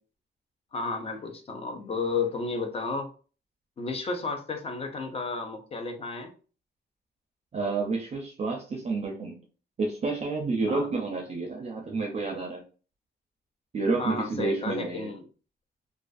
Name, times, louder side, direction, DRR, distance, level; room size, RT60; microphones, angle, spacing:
voice 1, 0.7-3.1 3.8-6.3 10.7-10.9 14.0-15.3, left 4 dB, 30° left, 5 dB, 0.4 m, -32 dB
voice 2, 7.5-9.4 9.8-12.6 13.7-15.1, right 3 dB, 35° right, 0 dB, 0.4 m, -30 dB
2.3 x 2.3 x 2.5 m, 0.37 s
wide cardioid pair, 165°, 19 cm